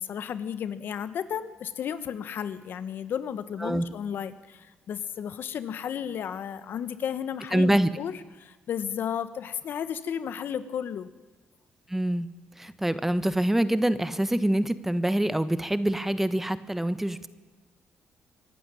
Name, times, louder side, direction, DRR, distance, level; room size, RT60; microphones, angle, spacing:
voice 1, 0.0-11.1, left 8 dB, 65° left, 13 dB, 1.1 m, -33 dB
voice 2, 7.5-7.9 11.9-12.3 12.6-17.3, right 1 dB, 5° right, 13 dB, 1.2 m, -25 dB
24.0 x 12.0 x 9.9 m, 1.3 s
cardioid pair, 90°, 4 cm